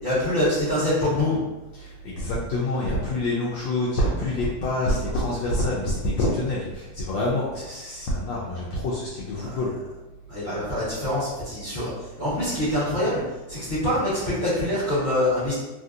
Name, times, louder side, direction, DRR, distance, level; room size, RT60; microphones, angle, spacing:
voice 1, 0.0-1.4 9.4-9.7 10.3-11.9 12.2-13.2 13.5-15.5, left 1 dB, 30° left, -11 dB, 1.0 m, -25 dB
voice 2, 1.8-9.7, left 1 dB, 75° left, -6 dB, 1.2 m, -26 dB
3.4 x 2.6 x 2.5 m, 1.1 s
omnidirectional pair, 2.2 m